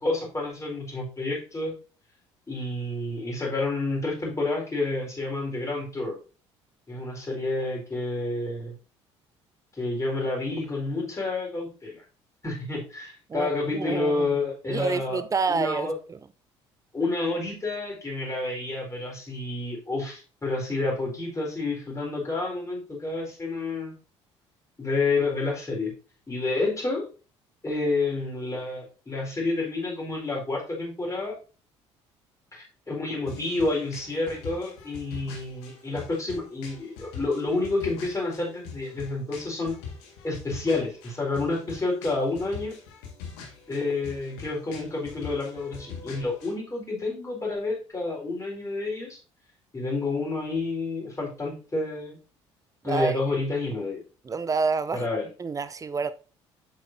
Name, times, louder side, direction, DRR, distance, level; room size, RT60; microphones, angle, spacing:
voice 1, 0.0-1.7 2.5-6.2 6.9-8.7 9.7-12.0 12.4-15.2 15.5-16.0 16.9-23.9 24.8-25.9 26.3-27.0 27.6-31.3 32.5-39.8 40.2-42.8 43.7-49.2 49.7-52.2 52.8-54.0 54.9-55.3, left 3 dB, 20° left, 4.2 m, -29 dB
voice 2, 13.3-14.4 14.7-16.2 52.8-53.2 54.2-55.1 55.4-56.1, right 5 dB, 20° right, 0.6 m, -28 dB
sound 1, 33.2-46.5, left 5 dB, 65° left, 1.9 m, -43 dB
8.0 x 7.7 x 2.7 m
figure-of-eight pair, 55°, 15 cm